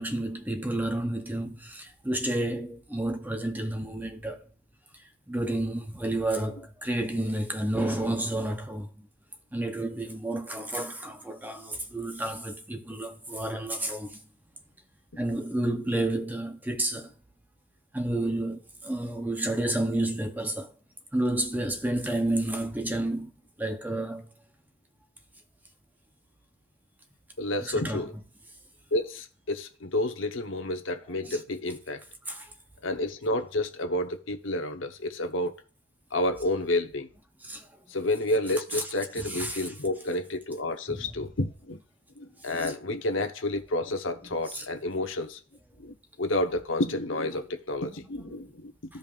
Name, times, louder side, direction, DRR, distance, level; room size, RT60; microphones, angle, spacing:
voice 1, 0.0-4.4 5.3-8.9 9.5-14.2 15.2-17.1 17.9-20.7 21.1-23.3 23.6-24.3 27.6-28.0 31.2-31.4 32.3-32.5 37.4-37.7 38.7-38.8 39.2-39.7 40.9-41.1 42.6-42.7 44.5-44.7 48.3-48.4, right 1 dB, 10° right, 0.7 m, -30 dB
voice 2, 27.4-28.1 28.9-32.0 32.8-35.5 36.1-37.1 37.9-41.8 42.2-45.4 45.8-49.0, left 1 dB, 70° left, 1.0 m, -30 dB
14.5 x 5.2 x 2.5 m
head